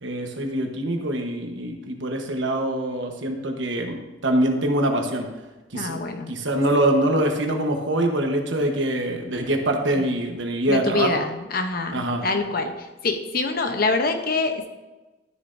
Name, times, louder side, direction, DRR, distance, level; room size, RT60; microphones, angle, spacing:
voice 1, 0.0-4.0 4.2-5.3 5.7-11.1 11.9-12.3, right 1 dB, 70° right, 3 dB, 1.2 m, -24 dB
voice 2, 5.7-6.3 10.0-10.1 10.7-14.7, left 3 dB, 50° left, 6 dB, 0.8 m, -25 dB
12.5 x 6.8 x 2.7 m, 1.1 s
head